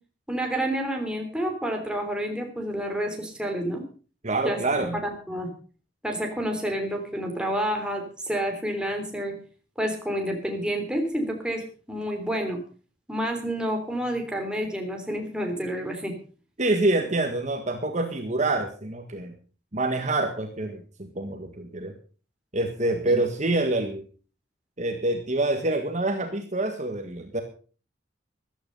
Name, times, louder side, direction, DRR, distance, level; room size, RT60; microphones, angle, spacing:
voice 1, 0.3-3.8 4.4-4.6 4.9-5.5 6.0-9.3 9.8-12.6 13.1-16.1 23.1-23.2, equal, 5° right, 2 dB, 3.3 m, -29 dB
voice 2, 4.2-5.0 16.6-19.3 19.7-21.9 22.5-24.0 24.8-27.4, right 2 dB, 40° right, 5 dB, 1.7 m, -26 dB
14.5 x 12.0 x 5.4 m, 0.38 s
head